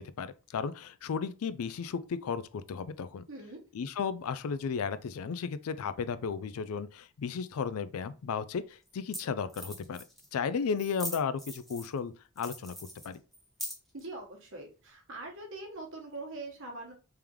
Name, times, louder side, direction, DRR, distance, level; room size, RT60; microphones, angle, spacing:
voice 1, 0.0-3.2 3.7-10.0 10.3-12.7 13.0-13.2, left 6 dB, 70° left, 0.4 m, -34 dB
voice 2, 3.3-3.6 13.9-16.9, right 2 dB, 60° right, 1.2 m, -43 dB
sound 1, 8.0-8.1 8.9-9.0 9.1-9.2 9.5-10.3 10.8-12.0 12.4-14.0, equal, ahead, 0.9 m, -41 dB
3.5 x 3.4 x 3.0 m
head